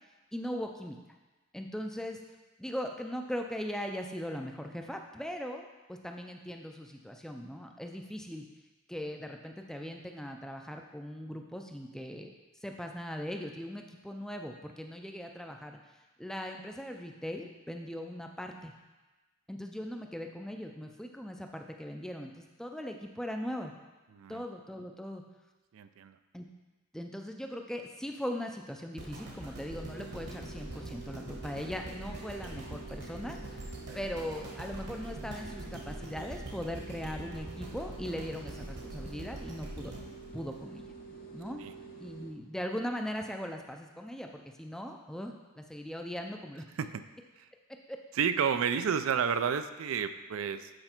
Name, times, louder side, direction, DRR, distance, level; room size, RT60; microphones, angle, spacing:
voice 1, 0.3-1.0 1.5-2.2 2.6-8.5 8.9-12.3 12.6-15.8 16.2-18.7 19.5-23.7 24.3-25.2 26.3-26.5 26.9-33.6 33.9-39.9 40.3-40.8 41.3-41.6 42.0-46.6 47.9-48.0, equal, 5° left, 3 dB, 0.4 m, -39 dB
voice 2, 24.1-24.5 25.7-26.2 41.6-41.7 46.8-47.0 47.4-47.5 48.1-50.7, right 7 dB, 80° right, 11 dB, 0.4 m, -31 dB
sound 1, 29.0-41.2 41.7-41.8, right 1 dB, 55° right, 1.1 m, -44 dB
sound 2, 29.7-42.3, right 4 dB, 45° left, 0.6 m, -48 dB
7.9 x 4.3 x 4.4 m, 1.2 s
head